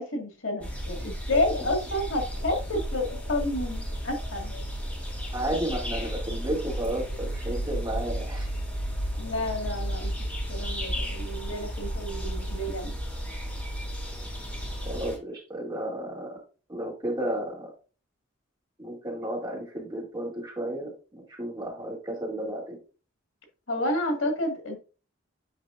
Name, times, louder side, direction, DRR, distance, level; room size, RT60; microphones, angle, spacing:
voice 1, 0.0-4.5 9.2-10.1 10.5-13.0 23.7-24.8, left 1 dB, 90° left, 3 dB, 1.8 m, -30 dB
sound 1, 0.6-15.2, equal, 5° left, 3.7 m, -33 dB
voice 2, 5.3-8.5 14.9-16.4 16.7-17.7 18.8-22.8, right 1 dB, 20° right, -2 dB, 2.4 m, -33 dB
9.3 x 4.9 x 2.5 m, 0.35 s
head